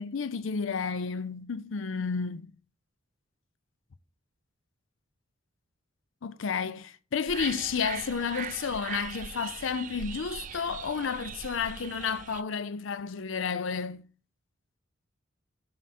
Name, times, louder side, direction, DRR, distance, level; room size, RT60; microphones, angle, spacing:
voice 1, 0.0-2.5 6.2-14.0, left 6 dB, 75° left, 0.5 m, -31 dB
sound 1, 7.3-12.4, right 8 dB, 40° right, 0.4 m, -40 dB
7.5 x 5.9 x 4.2 m
head